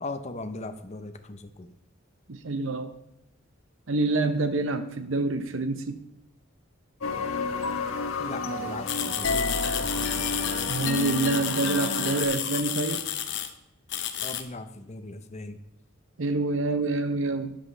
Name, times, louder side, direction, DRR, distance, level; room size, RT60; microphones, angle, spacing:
voice 1, 0.0-1.7 8.2-9.6 14.2-15.6, left 2 dB, 35° left, 9 dB, 0.8 m, -38 dB
voice 2, 2.3-2.9 3.9-6.0 10.7-13.0 16.2-17.6, right 3 dB, 70° right, 10 dB, 0.7 m, -27 dB
sound 1, 7.0-12.2, left 3 dB, 85° left, 1.4 m, -30 dB
sound 2, 8.9-13.5 13.9-14.4, left 10 dB, 60° left, 1.0 m, -31 dB
12.5 x 10.5 x 3.3 m, 0.88 s
head